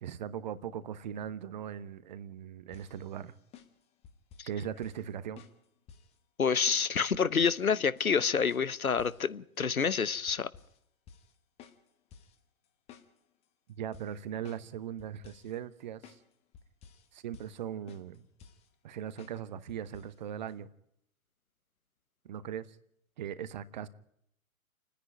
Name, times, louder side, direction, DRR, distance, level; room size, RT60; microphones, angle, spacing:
voice 1, 0.0-3.3 4.5-5.4 13.8-16.2 17.1-18.2 18.8-20.7 22.3-22.7 23.2-23.9, right 9 dB, 30° right, 0.9 m, -39 dB
sound 1, 2.7-4.5 4.8-5.1 5.4-6.2 6.7-7.6 8.0-9.3 9.8-10.0 10.3-10.8 11.1-11.3 11.6-12.4 12.6-13.4 13.9-14.7 15.0-15.6 16.0-16.2 16.5-17.1 17.3-17.6 17.9-18.7 19.2-19.4 19.7-20.1 20.5-20.6, left 7 dB, 15° left, 1.2 m, -54 dB
voice 2, 6.4-10.5, left 6 dB, 75° left, 1.0 m, -28 dB
29.0 x 10.0 x 9.0 m
figure-of-eight pair, 120°, 42 cm